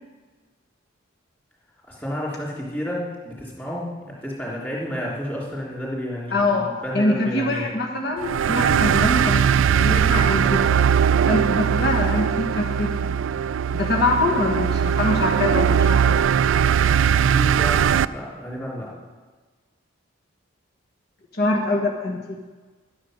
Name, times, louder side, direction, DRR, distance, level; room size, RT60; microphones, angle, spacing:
voice 1, 1.9-7.6 17.0-18.9, equal, 10° left, -5 dB, 3.1 m, -31 dB
voice 2, 6.3-6.7 6.9-10.8 11.3-13.2 13.7-16.4 21.3-22.4, left 2 dB, 50° left, 0 dB, 1.4 m, -24 dB
sound 1, 8.2-18.0, right 8 dB, 70° right, 0.3 m, -20 dB
11.5 x 10.5 x 6.3 m, 1.3 s
head